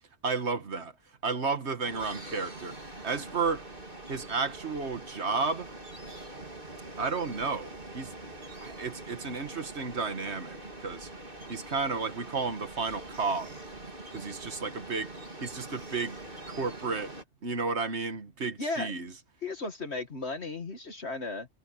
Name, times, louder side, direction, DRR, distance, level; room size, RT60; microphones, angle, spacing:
voice 1, 0.2-0.9 1.2-2.7 3.0-3.7 4.1-5.7 7.0-8.1 8.6-11.1 11.5-13.6 14.1-15.1 15.4-16.2 16.5-17.1 17.4-19.1, right 4 dB, 60° right, 1.8 m, -32 dB
sound 1, 1.8-17.2, right 2 dB, 45° right, 3.9 m, -44 dB
voice 2, 18.6-18.9 19.4-21.5, left 3 dB, 60° left, 2.2 m, -35 dB
omnidirectional pair, 1.3 m